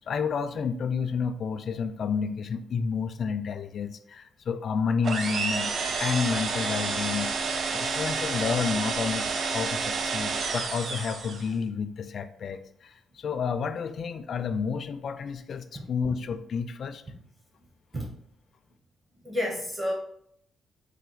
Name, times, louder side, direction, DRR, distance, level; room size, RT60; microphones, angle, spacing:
voice 1, 0.1-5.7 6.0-17.0, left 6 dB, 45° left, 9 dB, 0.3 m, -30 dB
sound 1, 5.0-11.5, right 4 dB, 50° right, 0.4 m, -30 dB
voice 2, 19.2-19.9, left 1 dB, 25° right, -3 dB, 0.8 m, -30 dB
4.2 x 2.6 x 3.9 m, 0.70 s
cardioid pair, 150°, 0 cm